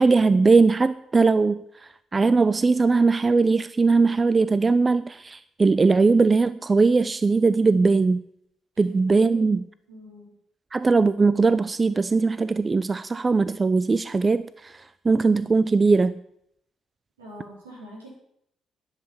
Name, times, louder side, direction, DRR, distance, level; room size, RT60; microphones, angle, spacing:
voice 1, 0.0-1.6 2.1-8.2 8.8-9.6 10.7-14.4 15.0-16.2, right 4 dB, 30° right, 0.4 m, -20 dB
voice 2, 9.1-9.4 9.9-10.3 17.2-18.1, right 1 dB, 80° right, 3.9 m, -43 dB
11.0 x 7.3 x 7.0 m
figure-of-eight pair, 45°, 0 cm